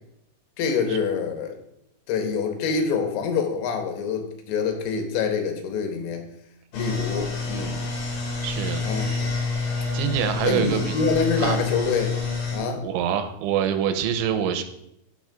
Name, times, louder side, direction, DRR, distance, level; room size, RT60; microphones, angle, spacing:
voice 1, 0.6-1.6 2.1-6.2 6.7-7.8 8.8-9.3 10.4-12.2 12.5-12.8, left 5 dB, 85° left, 4 dB, 3.2 m, -26 dB
sound 1, 6.7-12.6, left 4 dB, 60° left, 3.9 m, -28 dB
voice 2, 8.4-9.2 9.9-10.9 11.4-11.6 12.8-14.6, right 9 dB, 90° right, 9 dB, 3.1 m, -25 dB
14.5 x 5.9 x 2.4 m, 0.77 s
omnidirectional pair, 5.3 m